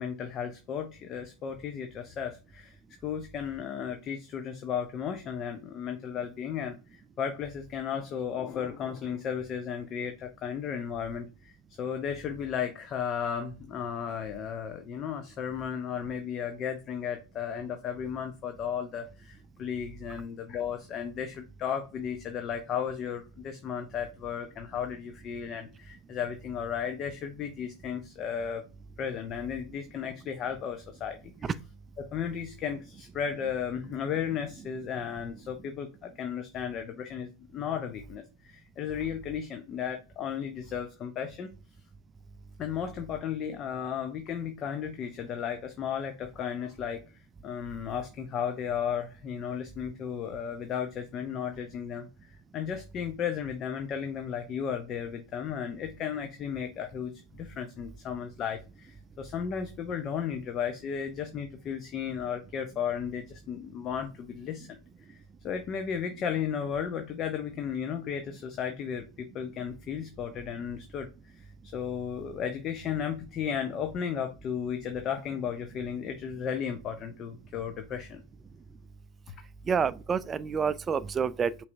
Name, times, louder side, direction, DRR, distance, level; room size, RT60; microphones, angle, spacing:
voice 1, 0.0-11.5 11.8-28.6 29.0-31.5 32.0-41.5 42.6-47.0 47.4-64.8 65.1-78.2, left 8 dB, 40° left, 0.6 m, -34 dB
voice 2, 79.7-81.6, right 6 dB, 25° right, 0.3 m, -28 dB
5.5 x 3.2 x 2.6 m
hypercardioid pair, 90°, 0 cm